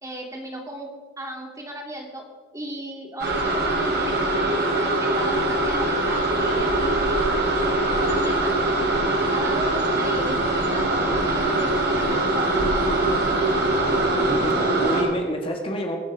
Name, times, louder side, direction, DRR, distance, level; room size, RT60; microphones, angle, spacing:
voice 1, 0.0-0.9 1.2-2.2 2.5-7.1 8.0-8.5 9.3-12.9, right 1 dB, 20° right, 1 dB, 2.6 m, -36 dB
sound 1, 3.2-15.0, right 2 dB, 60° right, 3.3 m, -22 dB
voice 2, 14.1-16.0, equal, 30° left, 1 dB, 1.8 m, -29 dB
22.5 x 8.0 x 5.1 m, 1.4 s
head